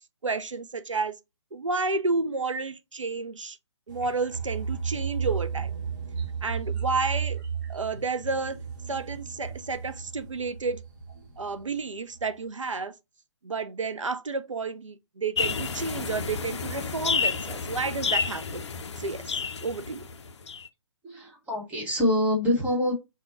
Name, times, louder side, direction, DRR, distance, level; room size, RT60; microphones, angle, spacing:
voice 1, 0.2-1.2 1.5-3.6 3.9-5.7 6.4-7.4 7.7-8.6 8.9-10.8 11.4-12.9 13.4-18.6 19.0-20.1, right 4 dB, 90° right, 0.5 m, -31 dB
sound 1, 3.9-11.8 12.1-12.3, right 6 dB, 40° right, 0.9 m, -34 dB
sound 2, 15.4-20.7, left 5 dB, 65° left, 0.5 m, -30 dB
voice 2, 21.0-22.9, left 1 dB, 10° right, 1.2 m, -25 dB
3.3 x 2.2 x 4.1 m
figure-of-eight pair, 135°, 16 cm